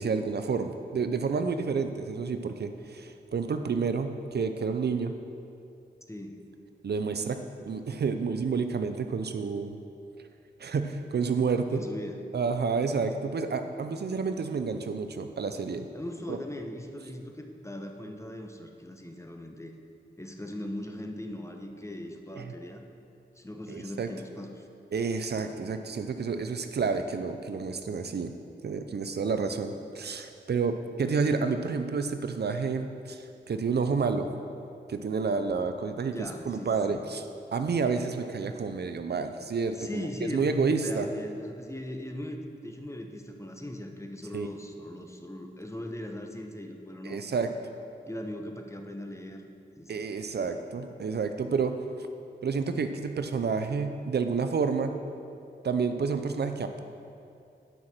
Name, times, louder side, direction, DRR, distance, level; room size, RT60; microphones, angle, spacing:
voice 1, 0.0-5.1 6.8-9.8 10.6-11.8 12.3-15.9 16.3-16.4 22.4-22.5 23.7-24.1 24.9-28.3 28.6-34.3 34.9-37.2 37.5-41.1 44.3-44.5 47.0-47.5 49.9-51.8 52.4-55.0 55.6-56.8, right 5 dB, 60° right, 8 dB, 0.6 m, -29 dB
voice 2, 6.1-6.5 11.7-12.2 15.9-19.7 20.2-22.8 23.3-24.7 36.1-37.0 39.7-47.2 48.1-49.4 49.8-50.1, left 1 dB, 15° left, 3 dB, 1.0 m, -39 dB
9.3 x 5.7 x 6.0 m, 2.5 s
cardioid pair, 50°, 19 cm